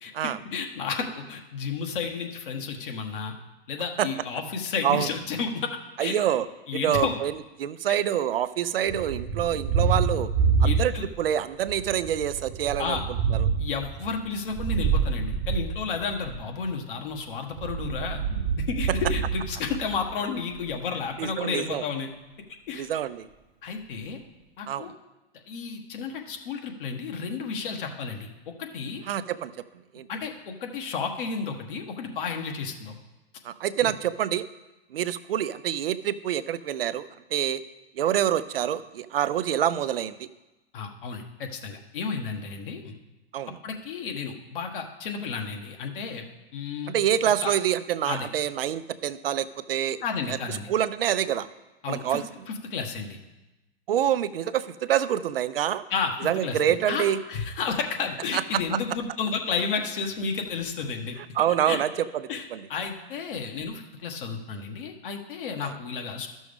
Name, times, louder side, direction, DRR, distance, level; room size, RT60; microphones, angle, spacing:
voice 1, 0.0-3.3 3.7-6.1 6.7-7.2 7.9-8.0 10.6-11.1 12.8-13.0 13.6-18.2 18.6-22.1 22.7-22.8 23.6-24.2 24.6-24.9 25.5-28.3 28.6-29.0 30.1-32.9 33.8-33.9 40.7-42.9 43.6-46.2 46.5-46.9 47.4-47.5 48.1-48.3 50.0-50.7 51.8-53.2 55.9-61.2 61.7-61.8 62.3-66.3, left 5 dB, 60° left, 3 dB, 1.4 m, -32 dB
voice 2, 6.0-6.5 6.8-7.3 7.6-10.3 10.6-13.0 13.3-13.5 21.2-21.8 22.8-23.3 24.7-24.8 29.1-29.5 29.9-30.1 33.4-34.4 34.9-37.6 38.0-40.3 43.3-43.6 46.9-50.0 50.3-51.5 51.9-52.2 53.9-55.8 56.2-57.2 58.3-58.8 61.4-62.2 62.5-62.6 65.6-65.7, right 10 dB, 70° right, 14 dB, 0.6 m, -26 dB
Thunder, 8.9-11.3 11.6-16.4 17.5-20.1, right 5 dB, 40° right, 1.1 m, -27 dB
13.0 x 6.2 x 3.6 m, 1.0 s
hypercardioid pair, 110°, 30 cm